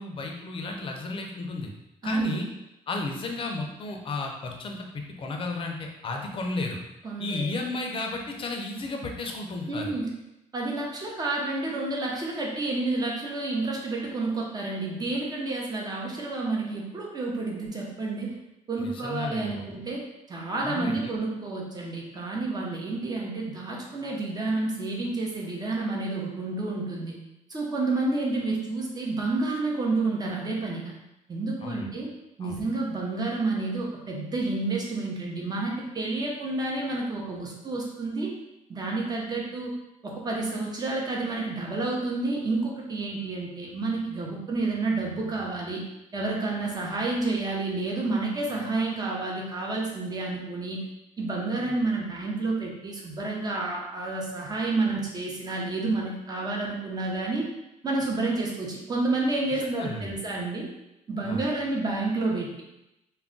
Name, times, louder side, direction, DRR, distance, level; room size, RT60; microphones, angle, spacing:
voice 1, 0.0-1.7 2.0-2.5 2.9-6.8 7.2-9.9 18.8-19.8 20.6-21.1 31.6-31.9 32.4-32.6 59.6-60.2 61.2-61.4, left 2 dB, 40° left, 2 dB, 0.5 m, -33 dB
voice 2, 2.0-2.4 7.0-7.4 9.7-10.1 10.5-18.3 18.7-20.0 20.3-27.1 27.5-30.9 31.3-32.1 32.4-38.3 38.7-39.7 40.0-45.8 46.1-50.8 51.2-57.5 57.8-60.7 61.1-62.6, right 3 dB, 30° right, -2 dB, 0.7 m, -29 dB
2.3 x 2.1 x 3.7 m, 0.88 s
cardioid pair, 115°, 13 cm